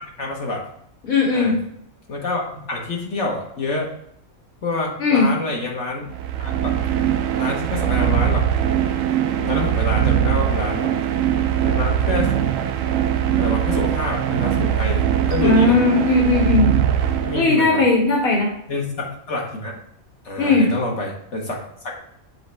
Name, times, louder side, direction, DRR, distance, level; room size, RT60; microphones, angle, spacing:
voice 1, 0.2-0.7 1.3-1.5 2.1-3.9 4.6-6.1 6.4-6.7 7.4-8.4 9.4-10.9 11.6-12.4 13.4-15.8 17.2-17.8 18.7-19.8 20.2-22.0, left 2 dB, 55° left, -1 dB, 1.3 m, -27 dB
voice 2, 1.0-1.6 5.0-5.3 15.4-16.7 17.3-18.5 20.4-20.7, left 3 dB, 75° left, -5 dB, 2.4 m, -17 dB
sound 1, 6.0-17.8, right 10 dB, 70° right, 0.9 m, -21 dB
7.2 x 3.1 x 4.4 m, 0.74 s
omnidirectional pair, 1.5 m